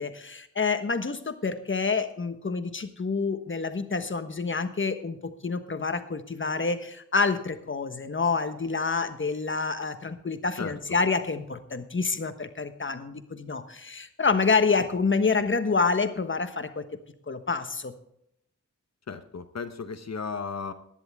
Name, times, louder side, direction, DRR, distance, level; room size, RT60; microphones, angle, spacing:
voice 1, 0.0-16.8 17.3-17.9, left 4 dB, 40° left, 9 dB, 1.3 m, -27 dB
voice 2, 19.1-20.7, left 5 dB, 55° left, 9 dB, 1.0 m, -35 dB
16.0 x 10.5 x 3.6 m, 0.75 s
wide cardioid pair, 85°, 31 cm